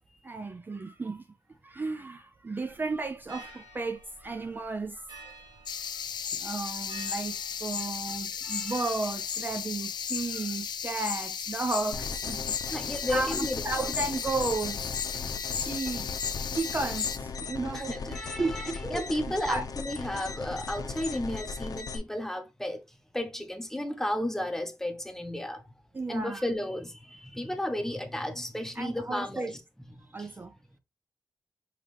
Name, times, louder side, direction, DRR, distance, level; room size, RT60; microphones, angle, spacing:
voice 1, 0.2-1.3 1.6-5.3 5.7-5.8 6.3-12.6 13.1-14.9 15.2-15.3 15.5-16.1 16.5-18.0 18.4-19.1 19.5-19.6 25.9-26.5 28.8-29.5 30.0-30.6, right 3 dB, 25° right, 0.3 m, -34 dB
sound 1, 2.6-15.4, right 2 dB, 85° right, 2.2 m, -53 dB
sound 2, 5.7-17.2, left 8 dB, 80° left, 0.4 m, -35 dB
voice 2, 8.4-8.7 12.7-13.6 17.7-25.7 26.1-29.6 30.2-30.3, left 1 dB, 5° left, 0.7 m, -33 dB
sound 3, 11.9-22.0, left 4 dB, 55° left, 0.7 m, -38 dB
5.5 x 3.0 x 3.2 m
wide cardioid pair, 125°, 7 cm